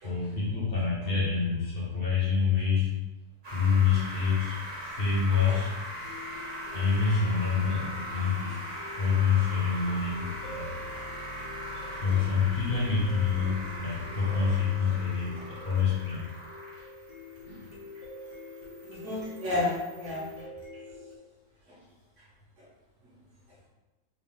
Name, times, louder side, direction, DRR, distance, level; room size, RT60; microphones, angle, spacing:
voice 1, 0.0-2.9 3.5-5.7 6.7-8.6 9.0-10.7 11.9-16.3 16.7-16.9 17.4-17.6, left 5 dB, 40° left, -6 dB, 1.1 m, -27 dB
sound 1, 3.4-20.4, equal, 35° right, 1.1 m, -40 dB
sound 2, 6.0-21.2, left 2 dB, 80° left, 1.7 m, -47 dB
voice 2, 18.8-20.3 21.7-21.8 22.6-22.7, left 2 dB, 50° right, -5 dB, 1.4 m, -32 dB
4.1 x 2.7 x 3.5 m, 1.1 s
omnidirectional pair, 1.7 m